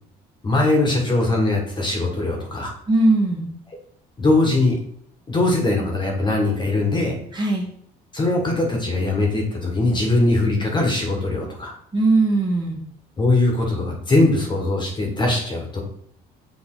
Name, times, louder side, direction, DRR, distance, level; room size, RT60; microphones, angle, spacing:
voice 1, 0.4-2.7 4.2-4.8 5.3-7.1 8.1-11.7 13.2-15.8, left 2 dB, 25° left, 0 dB, 1.6 m, -21 dB
voice 2, 2.9-3.5 7.3-7.7 11.9-12.8, right 2 dB, 25° right, -1 dB, 1.6 m, -19 dB
6.8 x 3.8 x 3.9 m, 0.65 s
cardioid pair, 110°, 17 cm